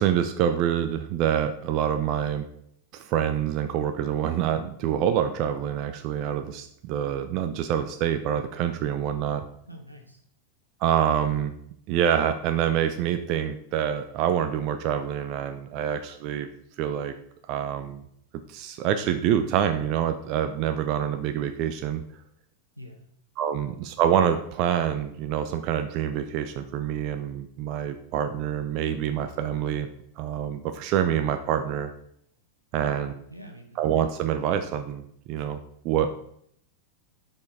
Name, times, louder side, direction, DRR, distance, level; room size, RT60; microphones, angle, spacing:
voice 1, 0.0-2.4 2.9-9.4 10.8-11.6 11.9-16.5 16.8-17.1 17.5-18.0 18.5-22.0 23.4-29.9 30.2-31.9 32.7-33.1 33.8-35.0 35.3-35.6 35.8-36.1, right 9 dB, 40° right, 8 dB, 0.5 m, -26 dB
voice 2, 9.7-10.2 22.8-23.1 32.7-33.9, equal, 90° right, 3 dB, 1.1 m, -45 dB
6.2 x 5.3 x 4.0 m, 0.69 s
figure-of-eight pair, 90°, 0 cm